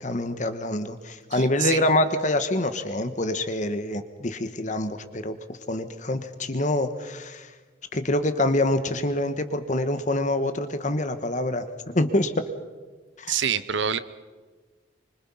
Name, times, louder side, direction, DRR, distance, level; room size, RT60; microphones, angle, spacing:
voice 1, 0.0-5.3 5.7-7.5 7.9-11.6 11.9-12.3 13.2-13.4, left 1 dB, 40° left, 10 dB, 1.4 m, -26 dB
voice 2, 1.3-1.8 13.3-14.0, right 8 dB, 65° right, 15 dB, 0.9 m, -26 dB
25.5 x 25.0 x 5.7 m, 1.4 s
head